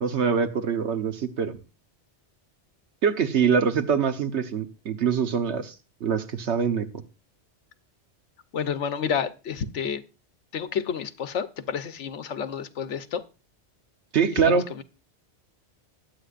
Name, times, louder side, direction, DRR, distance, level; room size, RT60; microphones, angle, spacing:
voice 1, 0.0-1.6 3.0-5.7 6.0-6.9 14.1-14.6, right 6 dB, 70° right, 8 dB, 1.3 m, -24 dB
voice 2, 8.5-10.0 10.5-13.2 14.4-14.8, left 7 dB, 80° left, 11 dB, 1.2 m, -30 dB
21.0 x 8.4 x 2.5 m, 0.32 s
omnidirectional pair, 1.2 m